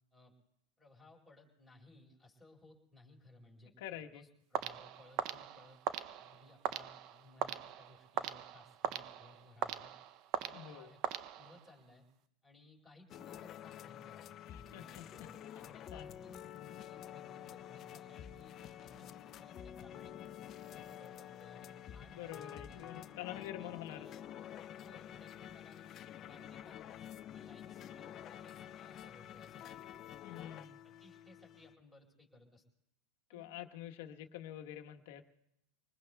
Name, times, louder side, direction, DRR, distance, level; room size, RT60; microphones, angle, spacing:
voice 1, 0.8-5.8 6.2-9.9 10.4-11.0 11.4-12.0 12.4-16.4 16.7-22.9 23.4-24.2 24.8-26.8 27.3-29.7 30.8-32.6 33.3-33.5 34.2-34.3, left 2 dB, ahead, -3 dB, 4.5 m, -61 dB
voice 2, 3.8-4.2 10.5-10.9 14.5-15.0 15.9-16.1 22.1-24.1 30.2-30.8 33.3-35.2, left 11 dB, 70° left, 5 dB, 1.1 m, -47 dB
sound 1, 4.5-11.8, right 10 dB, 50° right, 0.6 m, -41 dB
sound 2, 13.1-31.7, left 10 dB, 35° left, 0.5 m, -49 dB
26.5 x 20.0 x 2.3 m, 0.78 s
supercardioid pair, 115°, 0 cm